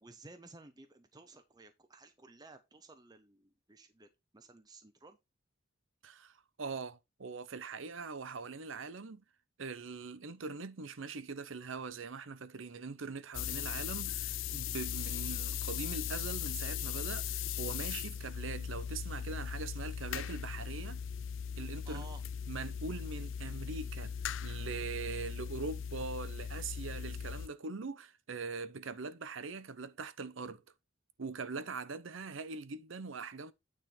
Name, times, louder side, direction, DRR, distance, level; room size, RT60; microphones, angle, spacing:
voice 1, 0.0-5.2 21.8-22.2, right 3 dB, 20° right, 0.7 m, -55 dB
voice 2, 6.0-9.2 9.6-21.0 21.6-22.1 22.5-24.1 24.4-30.6 31.2-33.5, right 4 dB, 75° right, 0.7 m, -42 dB
sound 1, 13.3-27.5, left 8 dB, 70° left, 0.4 m, -38 dB
9.2 x 3.7 x 5.7 m
head